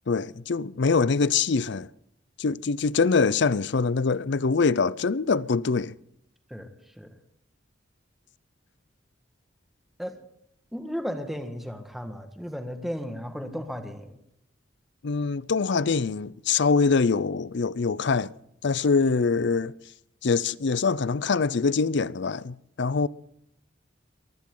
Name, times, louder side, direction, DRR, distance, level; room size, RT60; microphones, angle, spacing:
voice 1, 0.1-1.9 2.4-5.9 15.0-18.3 18.6-19.7 20.2-23.1, left 4 dB, 60° left, 0.5 m, -24 dB
voice 2, 10.7-14.2, equal, ahead, 1.6 m, -34 dB
22.5 x 16.0 x 3.8 m
head